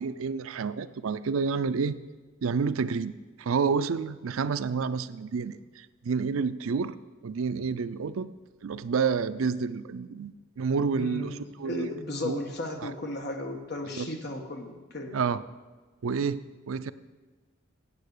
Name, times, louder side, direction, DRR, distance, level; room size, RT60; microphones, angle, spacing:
voice 1, 0.0-2.0 2.4-3.1 3.4-6.9 7.2-8.3 8.6-11.9 12.2-12.4 12.8-12.9 13.9-14.1 15.1-15.4 16.0-16.9, right 5 dB, 85° right, 14 dB, 0.4 m, -29 dB
voice 2, 10.9-15.1, left 1 dB, 50° left, 3 dB, 1.4 m, -35 dB
8.8 x 7.9 x 6.6 m, 1.4 s
head